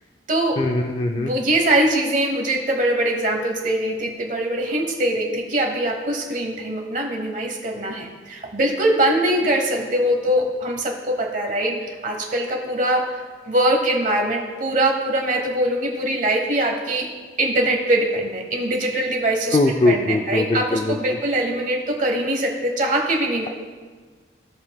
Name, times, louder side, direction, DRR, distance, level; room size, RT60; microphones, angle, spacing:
voice 1, 0.6-1.3 19.5-21.0, left 2 dB, 30° left, 3 dB, 0.3 m, -21 dB
voice 2, 1.2-13.0 13.5-17.1 17.4-19.6 19.9-23.5, right 1 dB, 45° right, 2 dB, 1.0 m, -22 dB
15.5 x 5.4 x 2.3 m, 1.5 s
head